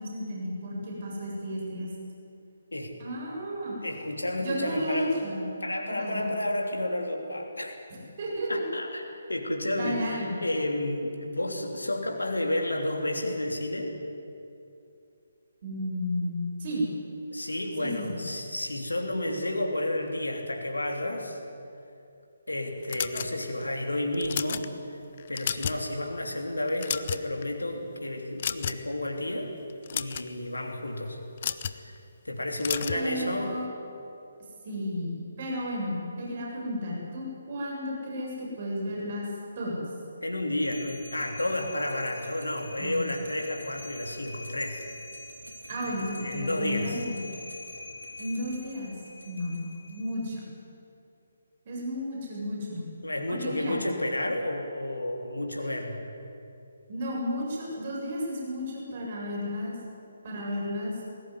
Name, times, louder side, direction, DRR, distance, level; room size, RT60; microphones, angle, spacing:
voice 1, 0.0-1.9 3.0-3.8 4.4-5.5 5.9-6.3 8.2-8.6 9.7-10.3 15.6-16.9 17.8-18.2 32.9-33.6 34.6-39.3 39.6-39.8 42.8-43.0 45.7-47.2 48.2-48.9 49.2-50.4 51.7-52.8 53.3-53.8 55.6-55.7 56.9-59.8 60.2-61.0, equal, 40° right, -3 dB, 7.3 m, -33 dB
voice 2, 3.8-5.2 5.6-7.8 8.5-9.0 9.3-14.0 17.3-21.4 22.5-25.0 25.3-29.5 29.9-31.2 31.7-32.0 32.2-33.6 40.2-44.8 45.9-47.0 53.0-56.0, left 1 dB, 75° left, 2 dB, 3.1 m, -31 dB
sound 1, 22.9-23.6 24.1-24.7 25.2-25.9 26.2-26.3 26.7-27.4 28.4-28.9 29.7-30.3 31.4-31.8 32.6-33.0, left 8 dB, 40° left, 0.8 m, -32 dB
sound 2, 40.6-50.3, left 1 dB, 75° right, 3.6 m, -44 dB
20.5 x 17.5 x 9.7 m, 2.7 s
figure-of-eight pair, 140°, 0 cm